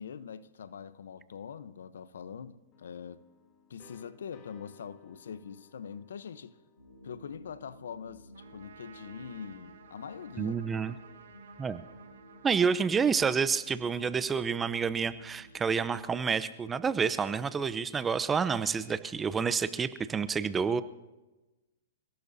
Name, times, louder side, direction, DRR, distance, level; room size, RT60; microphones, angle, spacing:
voice 1, 0.0-3.2 3.7-6.6 7.0-10.6, left 7 dB, 75° left, 0.9 m, -43 dB
sound 1, 2.7-8.4, left 4 dB, 30° left, 2.9 m, -61 dB
sound 2, 6.8-16.0, equal, 90° left, 5.4 m, -53 dB
Trumpet, 8.3-13.6, right 6 dB, 75° right, 3.4 m, -56 dB
voice 2, 10.4-10.9 11.6-11.8 12.4-20.8, right 6 dB, 15° right, 0.7 m, -29 dB
29.0 x 17.0 x 2.8 m
hypercardioid pair, 120°, 0 cm